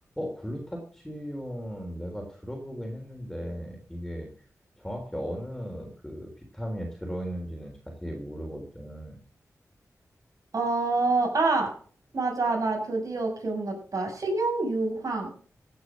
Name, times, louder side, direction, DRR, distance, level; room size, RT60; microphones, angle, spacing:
voice 1, 0.2-4.3 4.8-9.2, equal, 5° left, 1 dB, 3.8 m, -36 dB
voice 2, 10.5-11.7 12.1-15.3, right 3 dB, 70° right, 2 dB, 6.6 m, -27 dB
16.0 x 8.5 x 6.3 m, 0.42 s
wide cardioid pair, 75°, 6 cm